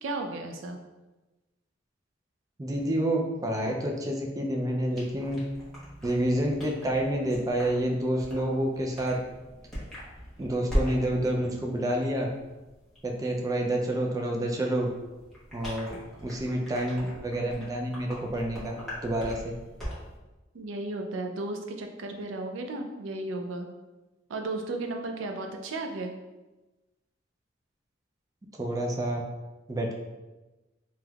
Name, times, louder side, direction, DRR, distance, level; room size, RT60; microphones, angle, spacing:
voice 1, 0.0-0.8 20.5-23.7 24.3-26.1, right 2 dB, 85° right, 4 dB, 0.4 m, -34 dB
voice 2, 2.6-5.4 6.0-9.2 10.4-12.3 13.0-14.9 15.5-18.7 19.0-19.5 28.5-29.2 29.7-29.9, right 1 dB, 20° right, 0 dB, 0.3 m, -28 dB
sound 1, 4.9-20.2, equal, ahead, 1.0 m, -40 dB
3.4 x 2.9 x 2.3 m, 1.1 s
head